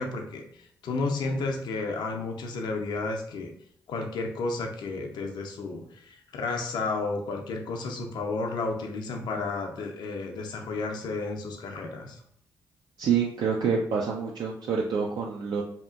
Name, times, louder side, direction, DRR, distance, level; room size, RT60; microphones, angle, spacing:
voice 1, 0.0-3.5 3.9-12.2, left 3 dB, 65° left, 3 dB, 0.5 m, -32 dB
voice 2, 13.0-15.6, right 6 dB, 65° right, -1 dB, 0.4 m, -27 dB
2.8 x 2.4 x 2.3 m, 0.66 s
hypercardioid pair, 40°, 8 cm